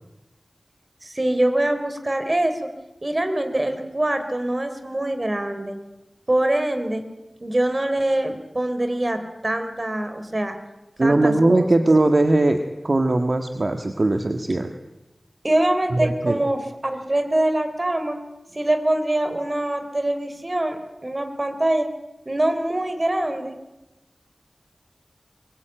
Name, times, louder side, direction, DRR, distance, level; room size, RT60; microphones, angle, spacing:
voice 1, 1.0-2.5 3.0-5.7 6.3-7.0 7.4-10.6 11.0-11.7 15.4-18.2 18.5-21.9 22.3-23.5, right 1 dB, 35° right, 8 dB, 3.7 m, -24 dB
voice 2, 11.0-14.7 15.9-16.4, right 2 dB, 55° right, 6 dB, 1.6 m, -20 dB
23.0 x 23.0 x 9.1 m, 0.99 s
wide cardioid pair, 60°, 0 cm